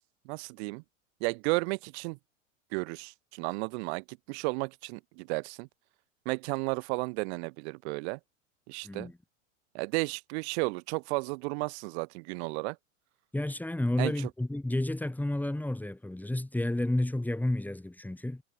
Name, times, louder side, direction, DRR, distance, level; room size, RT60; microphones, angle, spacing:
voice 1, 0.2-0.8 1.2-2.2 2.7-5.7 6.2-8.2 8.7-9.1 9.7-12.8 14.0-14.3, right 29 dB, 55° right, 3.2 m, -33 dB
voice 2, 8.8-9.2 13.3-18.4, left 1 dB, 5° left, 3.8 m, -31 dB
hypercardioid pair, 100°, 40 cm